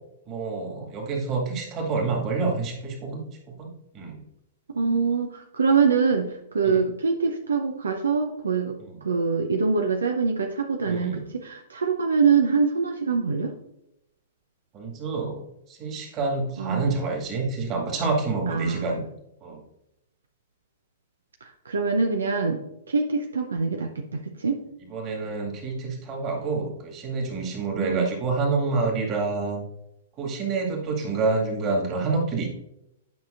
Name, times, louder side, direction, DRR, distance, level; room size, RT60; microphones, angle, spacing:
voice 1, 0.3-4.2 6.6-6.8 8.8-8.9 10.9-11.2 14.7-19.1 19.4-19.6 24.9-29.6 30.2-32.5, right 3 dB, 30° right, 0 dB, 2.0 m, -28 dB
voice 2, 4.7-13.5 16.6-16.9 18.5-19.0 21.4-24.6 27.8-28.1, right 5 dB, 75° right, 4 dB, 0.7 m, -24 dB
9.3 x 5.8 x 2.5 m, 0.82 s
figure-of-eight pair, 105°, 0 cm